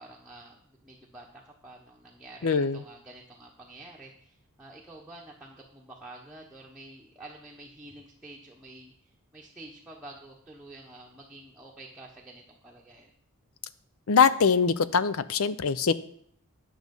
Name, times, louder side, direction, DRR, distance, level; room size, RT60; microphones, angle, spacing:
voice 1, 0.0-8.9 9.3-13.1, right 2 dB, 5° right, -4 dB, 1.0 m, -48 dB
voice 2, 2.4-2.8 14.1-15.9, left 5 dB, 70° left, 15 dB, 0.5 m, -23 dB
10.0 x 6.3 x 5.3 m, 0.65 s
head